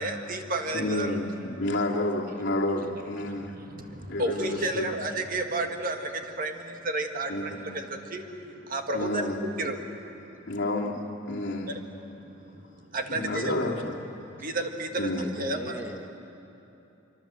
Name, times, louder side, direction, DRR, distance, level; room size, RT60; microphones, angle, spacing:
voice 1, 0.0-1.2 3.2-10.5 11.7-11.8 12.1-13.5 14.3-15.8, right 2 dB, 45° right, 4 dB, 1.8 m, -32 dB
voice 2, 0.7-3.6 4.1-5.0 7.3-7.8 8.9-9.4 10.5-11.0 11.3-11.8 13.1-14.0 15.0-15.2, left 1 dB, 60° left, -3 dB, 2.9 m, -30 dB
voice 3, 15.2-16.1, equal, 10° right, 3 dB, 1.3 m, -40 dB
25.5 x 24.5 x 7.7 m, 2.9 s
head